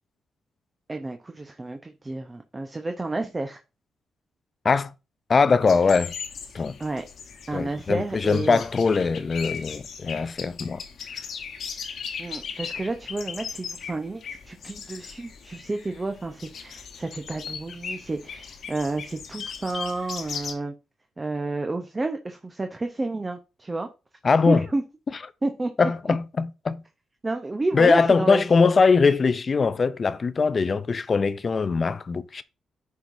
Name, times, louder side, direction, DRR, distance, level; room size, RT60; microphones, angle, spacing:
voice 1, 0.9-3.6 6.8-7.0 7.5-8.6 12.2-20.7 21.2-23.9 24.5-24.8 25.4-26.2 27.2-28.4, right 2 dB, 25° right, 0.7 m, -30 dB
voice 2, 5.3-6.1 6.5-6.8 7.5-10.8 24.2-24.7 25.8-26.8 27.7-32.4, left 4 dB, 40° left, 0.4 m, -21 dB
sound 1, 5.7-20.5, left 6 dB, 70° left, 1.1 m, -38 dB
10.5 x 4.7 x 2.6 m
cardioid pair, 85°, 0 cm